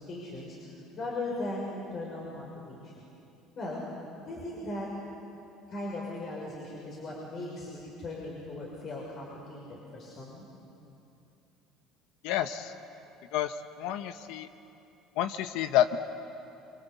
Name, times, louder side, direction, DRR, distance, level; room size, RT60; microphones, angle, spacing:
voice 1, 0.1-0.6 0.9-3.1 3.6-3.9 4.3-4.9 5.7-10.4, left 2 dB, 50° left, -3 dB, 6.3 m, -38 dB
voice 2, 12.2-12.7 13.3-14.5 15.2-16.0, left 11 dB, 75° left, 10 dB, 1.0 m, -29 dB
27.5 x 26.0 x 8.3 m, 2.8 s
supercardioid pair, 85°, 0 cm